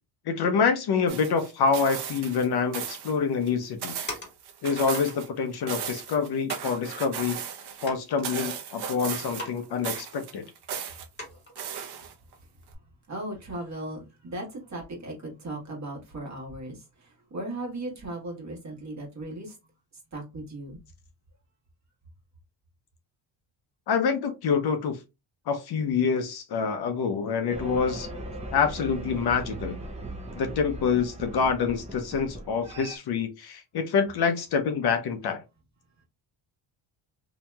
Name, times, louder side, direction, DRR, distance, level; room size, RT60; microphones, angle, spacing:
voice 1, 0.3-4.0 4.6-7.4 7.8-10.4 23.9-25.0 25.5-28.1 28.5-29.8 30.3-35.4, left 5 dB, 55° left, 0.6 m, -26 dB
sound 1, 1.1-2.5 2.7-3.2 3.5-5.3 5.5-7.9 8.2-9.6 9.8-11.0 11.6-12.3 12.7-12.8, right 8 dB, 60° right, 0.7 m, -36 dB
sound 2, 3.6-4.6 4.9-5.2 6.0-6.1 6.5-6.7 7.3-7.4 7.8-8.8 9.3-9.7 9.9-10.0 10.6-10.7 11.2-11.6 12.1-12.3, left 1 dB, 25° left, 1.6 m, -40 dB
voice 2, 13.1-19.5 20.1-20.8, right 1 dB, 35° right, 1.4 m, -37 dB
sound 3, 27.5-33.0, right 2 dB, 15° right, 0.5 m, -39 dB
2.9 x 2.7 x 2.2 m
cardioid pair, 115°, 45 cm